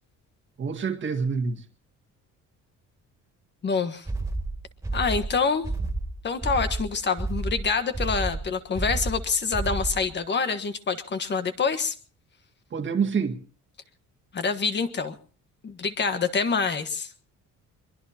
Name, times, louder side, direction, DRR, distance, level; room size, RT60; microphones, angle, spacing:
voice 1, 0.6-1.6 12.7-13.4, right 5 dB, 40° right, 1.9 m, -27 dB
voice 2, 3.6-4.1 4.9-5.7 6.2-11.9 14.3-15.2 15.6-17.1, left 5 dB, 35° left, 1.4 m, -26 dB
sound 1, 4.1-10.1, right 2 dB, 10° right, 2.6 m, -30 dB
22.5 x 22.5 x 2.8 m
cardioid pair, 150°, 31 cm